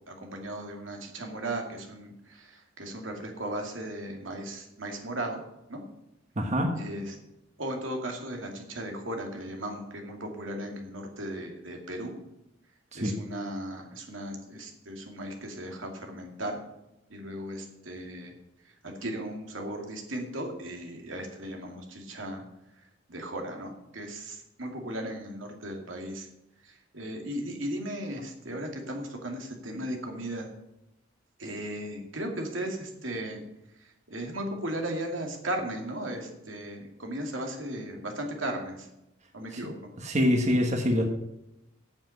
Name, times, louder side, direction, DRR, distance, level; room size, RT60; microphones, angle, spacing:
voice 1, 0.1-5.4 5.7-5.8 6.8-7.1 7.6-12.1 12.9-16.6 17.1-18.3 19.0-22.4 23.1-26.3 26.9-30.5 31.4-33.4 34.1-38.9 39.3-39.7, right 1 dB, 90° right, 2 dB, 2.4 m, -36 dB
voice 2, 6.4-6.9 12.9-13.2 39.5-39.7 40.0-41.0, equal, 35° right, 3 dB, 1.3 m, -25 dB
8.8 x 7.5 x 7.8 m, 0.88 s
head